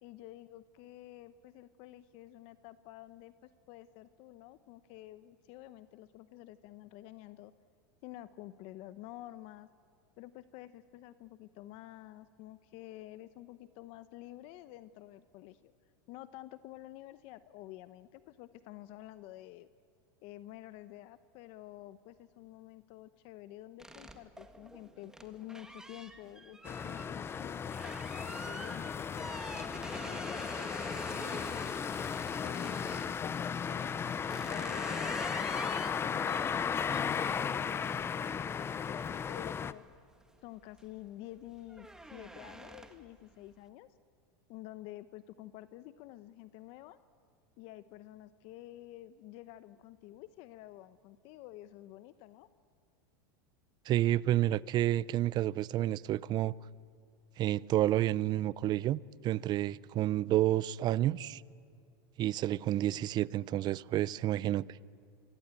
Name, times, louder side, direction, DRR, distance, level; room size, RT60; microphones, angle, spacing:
voice 1, 0.0-7.5 8.0-9.7 10.2-15.7 16.1-19.7 20.2-31.7 32.4-33.9 34.5-35.2 35.9-39.8 40.4-44.0 44.5-47.0 47.6-52.5, left 15 dB, 55° left, 0.8 m, -50 dB
sound 1, 23.8-33.2 33.8-40.2 40.6-41.0 41.3-43.2, right 1 dB, 5° right, 1.8 m, -47 dB
sound 2, 26.6-39.7, left 7 dB, 20° left, 0.7 m, -35 dB
voice 2, 53.9-56.5 57.4-61.4 62.2-64.6, right 13 dB, 35° right, 0.6 m, -30 dB
25.5 x 24.5 x 9.0 m
supercardioid pair, 125°, 12 cm